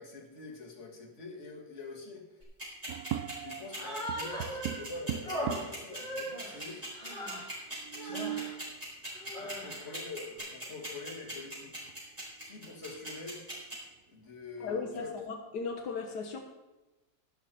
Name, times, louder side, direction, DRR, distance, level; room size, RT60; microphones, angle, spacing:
voice 1, 0.0-2.4 3.4-7.1 8.0-8.5 9.4-13.4 14.1-15.2, left 3 dB, 45° left, -1 dB, 2.4 m, -46 dB
sound 1, 2.4-13.7, right 1 dB, 25° right, 5.4 m, -40 dB
sound 2, 2.9-3.7 4.1-5.9 6.6-6.7 6.9-7.0 7.7-8.6 10.4-10.5 11.0-11.5 11.9-12.0 12.5-13.4, right 12 dB, 80° right, 1.1 m, -40 dB
Human voice, 3.7-4.8 5.2-7.6 7.9-8.6 9.1-9.9, equal, 25° left, 4.6 m, -39 dB
voice 2, 14.6-16.4, left 5 dB, 80° left, 3 dB, 1.7 m, -36 dB
12.5 x 11.5 x 4.3 m, 1.1 s
omnidirectional pair, 1.7 m